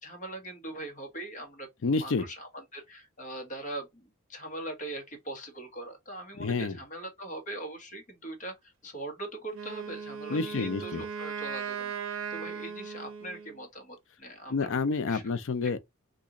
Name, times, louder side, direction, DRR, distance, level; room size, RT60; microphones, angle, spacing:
voice 1, 0.0-1.7 2.0-14.7 15.1-15.2, right 1 dB, 35° left, 1.3 m, -41 dB
voice 2, 1.8-2.3 6.4-6.8 10.3-11.0 14.5-15.8, left 4 dB, 60° left, 0.5 m, -29 dB
Wind instrument woodwind instrument, 9.5-13.6, right 6 dB, 65° right, 0.8 m, -38 dB
2.9 x 2.6 x 3.7 m
head